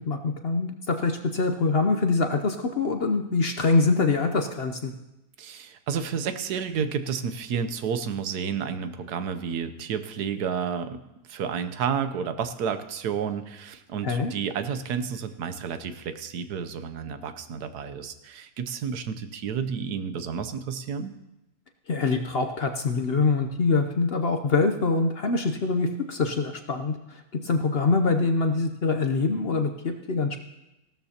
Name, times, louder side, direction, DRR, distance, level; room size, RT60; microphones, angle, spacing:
voice 1, 0.1-4.9 14.0-14.3 21.9-30.4, left 3 dB, 50° left, 6 dB, 0.8 m, -24 dB
voice 2, 5.4-11.0 11.3-21.1, right 7 dB, 90° right, 10 dB, 1.4 m, -31 dB
16.5 x 13.0 x 2.9 m, 0.95 s
omnidirectional pair, 1.6 m